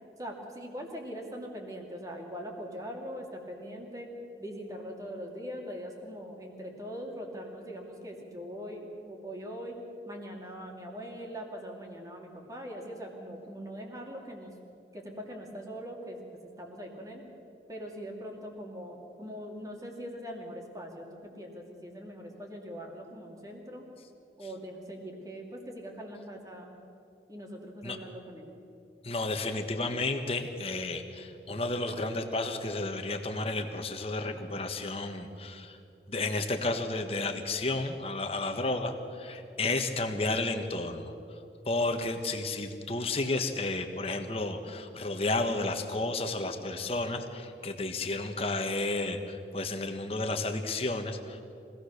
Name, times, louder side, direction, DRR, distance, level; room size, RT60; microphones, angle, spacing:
voice 1, 0.2-4.1 4.4-9.8 10.1-14.6 14.9-17.2 17.7-23.9 24.4-26.8 27.3-28.5, equal, 20° right, 0 dB, 2.7 m, -42 dB
voice 2, 29.0-35.8 36.1-41.1 41.6-51.5, left 2 dB, 35° left, 6 dB, 1.5 m, -32 dB
24.5 x 17.5 x 6.6 m, 2.8 s
head